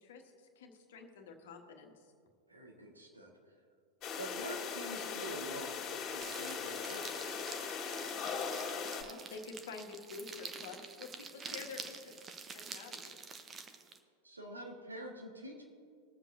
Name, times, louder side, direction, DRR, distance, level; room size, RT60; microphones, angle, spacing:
voice 1, 0.0-2.0 8.6-12.2 12.5-13.1, left 4 dB, 60° left, 3 dB, 1.4 m, -49 dB
voice 2, 2.5-3.3 4.2-7.7 14.2-15.6, right 1 dB, 80° right, 0 dB, 1.6 m, -47 dB
sound 1, 4.0-9.0, left 6 dB, 35° left, 2.2 m, -39 dB
sound 2, 6.2-14.0, right 5 dB, 20° right, 0.8 m, -48 dB
21.5 x 7.5 x 2.7 m, 2.3 s
figure-of-eight pair, 90°, 0 cm